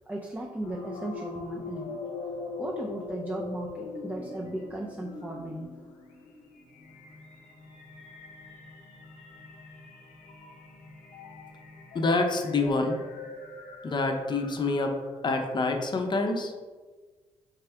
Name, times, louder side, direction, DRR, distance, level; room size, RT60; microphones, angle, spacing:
voice 1, 0.1-2.0 2.6-5.7, right 1 dB, 15° right, -1 dB, 0.5 m, -36 dB
sound 1, 0.6-15.2, left 4 dB, 85° left, 0.7 m, -42 dB
voice 2, 11.9-13.0 13.8-14.9 15.2-16.5, left 3 dB, 40° left, 4 dB, 0.6 m, -26 dB
3.6 x 3.3 x 3.4 m, 1.3 s
cardioid pair, 65°, 12 cm